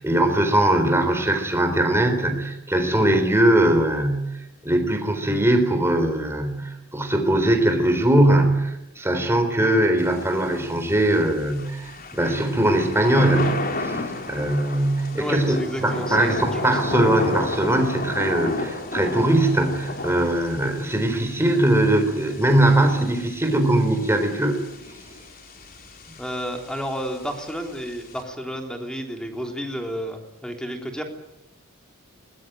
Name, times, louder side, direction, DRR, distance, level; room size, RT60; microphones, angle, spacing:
voice 1, 0.0-4.3 4.6-14.0 14.3-24.6, right 1 dB, 10° right, 6 dB, 3.9 m, -21 dB
Thunder / Rain, 10.0-28.2, left 2 dB, 45° left, 3.8 m, -33 dB
voice 2, 15.1-17.3 26.2-31.0, equal, 5° left, 3 dB, 3.4 m, -32 dB
22.0 x 20.0 x 9.1 m, 0.89 s
head